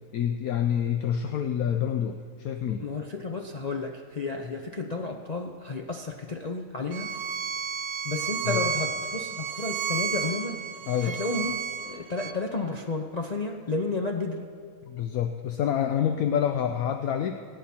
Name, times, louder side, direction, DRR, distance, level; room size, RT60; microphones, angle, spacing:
voice 1, 0.1-2.9 8.4-8.6 10.9-11.2 14.8-17.4, left 9 dB, 70° left, 6 dB, 1.1 m, -27 dB
voice 2, 2.8-7.1 8.0-10.6 11.0-11.5 11.8-14.5, left 3 dB, 45° left, 1 dB, 0.5 m, -32 dB
Bowed string instrument, 6.9-12.3, right 6 dB, 55° right, 0.8 m, -32 dB
25.0 x 9.4 x 4.3 m, 2.2 s
omnidirectional pair, 1.6 m